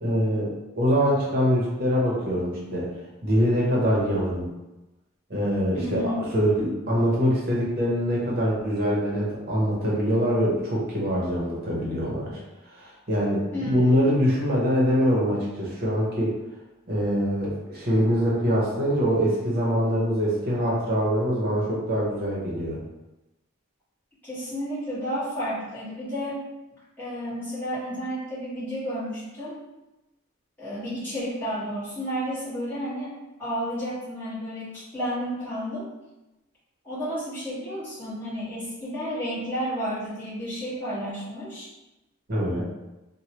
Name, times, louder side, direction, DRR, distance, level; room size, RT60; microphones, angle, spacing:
voice 1, 0.0-2.9 3.2-4.5 5.3-6.0 6.3-12.4 12.8-16.3 16.9-22.8 42.3-42.6, equal, 45° right, -5 dB, 0.9 m, -24 dB
voice 2, 5.7-6.2 13.5-14.1 24.2-26.4 27.0-29.6 30.6-33.1 33.4-35.9 36.8-41.7, equal, 10° left, -14 dB, 1.5 m, -31 dB
3.1 x 2.2 x 2.9 m, 1.0 s
head